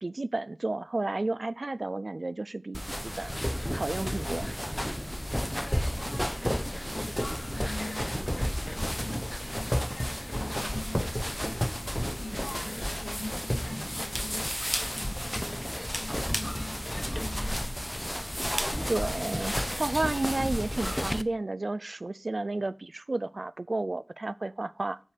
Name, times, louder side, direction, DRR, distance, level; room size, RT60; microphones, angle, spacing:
voice 1, 0.0-3.3 3.8-4.5 18.9-25.0, right 2 dB, 60° right, 0.4 m, -32 dB
sound 1, 2.7-21.2, equal, 5° left, 0.5 m, -32 dB
voice 2, 5.5-14.6 14.9-17.7, left 2 dB, 75° left, 2.0 m, -44 dB
6.5 x 5.3 x 7.0 m
wide cardioid pair, 45°, 0 cm